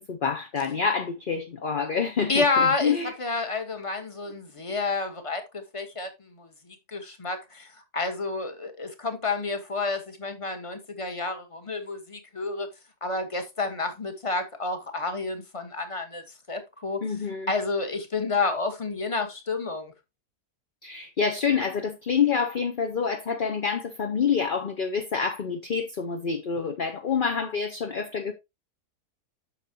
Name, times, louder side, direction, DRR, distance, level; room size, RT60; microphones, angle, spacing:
voice 1, 0.0-3.1 17.0-17.5 20.8-28.3, left 6 dB, 40° left, 0.9 m, -27 dB
voice 2, 2.3-12.7 13.0-16.2 16.5-17.0 17.5-19.9, left 3 dB, 20° left, 1.3 m, -29 dB
8.5 x 6.6 x 2.9 m
omnidirectional pair, 1.6 m